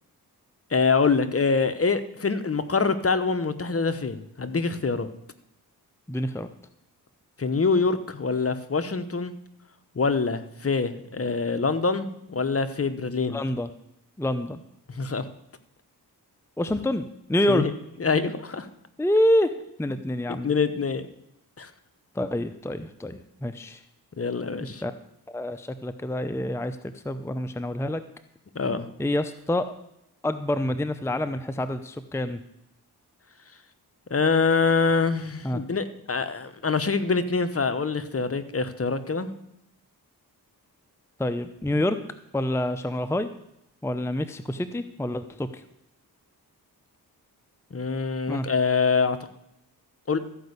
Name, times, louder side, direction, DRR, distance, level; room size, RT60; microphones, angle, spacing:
voice 1, 0.7-5.1 7.4-9.4 9.9-13.4 14.9-15.3 17.5-17.7 18.0-18.7 20.4-21.1 21.6-21.7 24.2-24.8 28.5-28.9 34.1-39.3 47.7-49.2 50.1-50.2, left 4 dB, 35° left, 10 dB, 1.0 m, -25 dB
voice 2, 6.1-6.5 13.3-13.7 14.2-14.6 16.6-17.6 19.0-19.5 19.8-20.5 22.1-23.8 24.8-24.9 25.3-28.0 29.0-29.7 30.2-32.4 35.4-35.6 41.2-42.0 42.3-43.3 43.8-45.6 48.3-48.5, left 1 dB, 5° left, 10 dB, 0.7 m, -27 dB
14.0 x 5.3 x 8.1 m, 0.80 s
cardioid pair, 60°, 39 cm